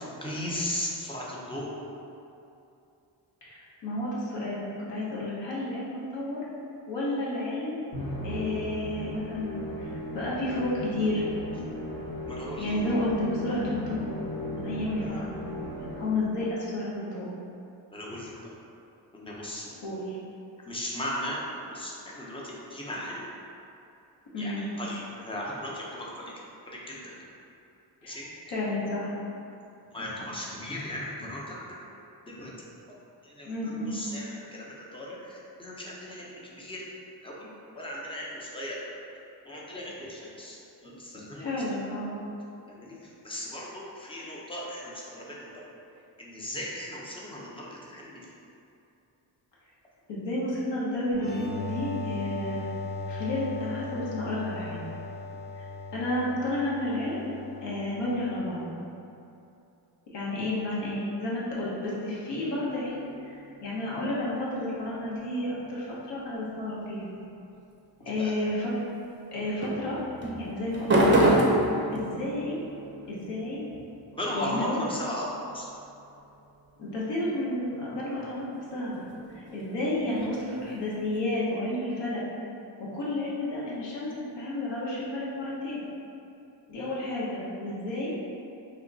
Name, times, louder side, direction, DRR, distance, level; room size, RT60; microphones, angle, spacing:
voice 1, 0.0-1.7 12.3-12.7 17.9-18.3 19.1-19.7 20.7-23.3 24.4-26.3 26.7-27.1 28.0-28.3 29.9-31.8 32.3-32.5 33.2-33.5 33.9-36.9 37.2-37.5 37.7-38.9 39.4-41.6 42.7-45.6 46.2-48.3 68.0-68.3 74.1-75.3 75.5-75.6, left 1 dB, 10° left, -5 dB, 0.6 m, -37 dB
voice 2, 3.4-6.4 6.9-7.8 8.2-11.2 12.6-14.1 14.5-15.4 15.9-17.3 19.8-20.2 24.3-24.6 28.0-29.1 33.4-33.9 40.0-40.1 41.4-42.2 50.1-52.7 53.1-54.9 55.5-57.3 57.6-58.7 60.1-67.1 68.0-68.7 69.3-71.3 71.9-72.6 73.1-73.6 74.3-74.8 76.8-79.0 79.3-82.2 82.8-85.8 86.7-88.1, left 1 dB, 70° left, -7 dB, 1.0 m, -31 dB
Musical instrument, 7.9-16.4, equal, 45° left, 0.9 m, -37 dB
sound 1, 51.1-58.6, left 2 dB, 90° left, 0.7 m, -38 dB
sound 2, 62.6-64.4 68.0-68.5 69.6-76.4 78.1-81.2, right 1 dB, 25° right, 0.5 m, -30 dB
3.0 x 2.2 x 3.8 m, 2.7 s
cardioid pair, 80°, 44 cm